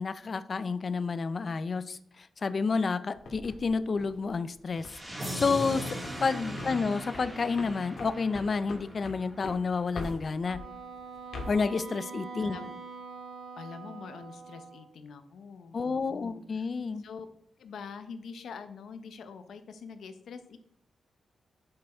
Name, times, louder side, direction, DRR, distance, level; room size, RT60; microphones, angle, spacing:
voice 1, 0.0-4.9 5.3-10.6 11.5-12.6 15.7-17.0, left 4 dB, 40° left, 14 dB, 0.4 m, -30 dB
sound 1, 3.2-5.0 5.4-5.7 6.0-6.3 6.6-10.7 11.1-11.6, left 2 dB, 65° left, 1.7 m, -43 dB
sound 2, 4.8-9.7, equal, 5° right, 1.9 m, -39 dB
voice 2, 6.5-6.9 12.4-12.7 13.6-16.7 17.0-17.3 17.6-20.6, left 5 dB, 85° left, 10 dB, 0.8 m, -45 dB
Wind instrument woodwind instrument, 10.4-14.9, right 5 dB, 85° right, 1.5 m, -44 dB
7.7 x 6.7 x 4.3 m, 0.70 s
wide cardioid pair, 155°, 0 cm